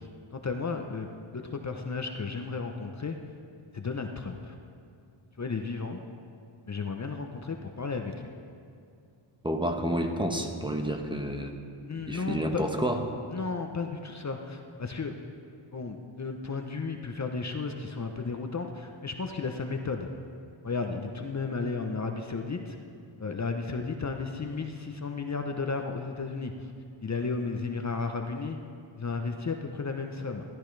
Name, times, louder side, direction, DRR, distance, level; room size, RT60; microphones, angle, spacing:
voice 1, 0.0-3.2 3.7-4.5 5.4-6.0 6.7-8.3 9.9-10.0 11.9-12.6 13.3-15.2 15.7-20.1 20.6-22.8 23.2-26.7 27.0-28.6 29.0-30.4, left 4 dB, 35° left, 4 dB, 0.8 m, -34 dB
voice 2, 9.4-11.5 12.1-13.0, equal, 10° right, 3 dB, 1.2 m, -29 dB
15.0 x 13.5 x 3.3 m, 2.4 s
cardioid pair, 75°, 48 cm